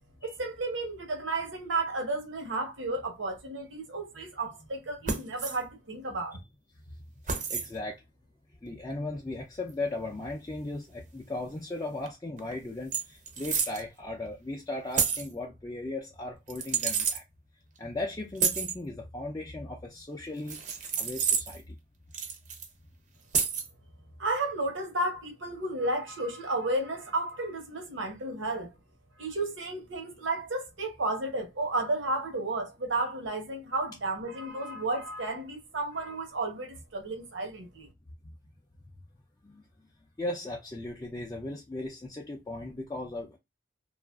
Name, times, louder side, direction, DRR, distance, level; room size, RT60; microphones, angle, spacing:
voice 1, 0.2-6.4 24.2-28.7 29.2-37.9, right 2 dB, 85° right, 1.0 m, -32 dB
sound 1, 5.1-5.6 7.3-7.7 9.7-9.8 12.1-12.2 12.4-12.5 12.9-13.8 14.9-15.3 16.5-17.2 18.4-18.8 20.5-21.6 22.1-22.7 23.3-23.7, right 6 dB, 40° right, 0.6 m, -29 dB
voice 2, 7.5-8.0 8.6-17.2 17.8-20.6 21.0-21.8 39.4-39.6 40.2-43.4, left 2 dB, 20° left, 0.4 m, -37 dB
2.8 x 2.4 x 2.3 m
head